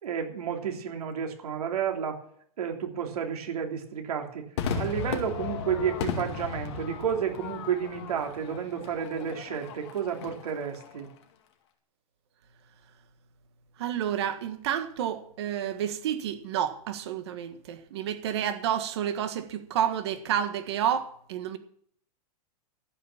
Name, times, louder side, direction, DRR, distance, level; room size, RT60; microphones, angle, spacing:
voice 1, 0.0-2.2 2.6-4.5 4.7-11.1, right 8 dB, 85° right, 3.2 m, -31 dB
Crowd / Fireworks, 4.6-11.1, left 6 dB, 45° left, 2.2 m, -36 dB
voice 2, 13.8-21.6, right 9 dB, 45° right, 1.5 m, -30 dB
14.5 x 6.3 x 7.3 m
supercardioid pair, 175°, 19 cm